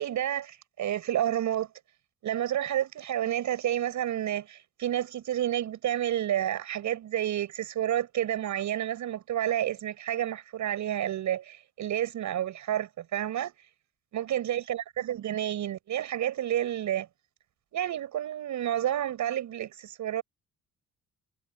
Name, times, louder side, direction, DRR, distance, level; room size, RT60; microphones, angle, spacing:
voice 1, 0.0-1.7 2.2-13.5 14.1-17.1 17.7-20.2, right 11 dB, 75° right, 7.6 m, -30 dB
cardioid pair, 90°, 30 cm